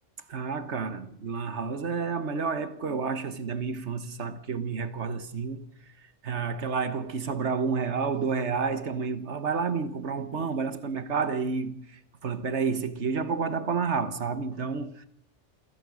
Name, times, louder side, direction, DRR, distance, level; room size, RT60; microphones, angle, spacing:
voice 1, 0.3-5.7 6.0-15.1, right 5 dB, 70° right, 1.6 m, -30 dB
27.5 x 16.5 x 6.3 m
omnidirectional pair, 1.2 m